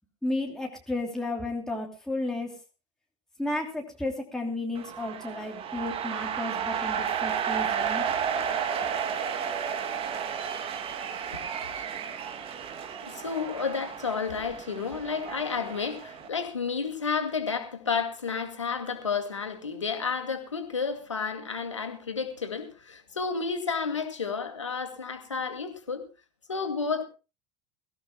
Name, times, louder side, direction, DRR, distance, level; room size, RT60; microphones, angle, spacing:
voice 1, 0.2-2.5 3.4-8.0, left 2 dB, 5° left, 2.9 m, -33 dB
sound 1, 4.7-16.3, right 8 dB, 40° right, 2.4 m, -32 dB
voice 2, 13.0-26.1 26.5-27.0, left 5 dB, 80° left, 2.3 m, -31 dB
23.0 x 16.0 x 2.2 m
figure-of-eight pair, 75°, 15 cm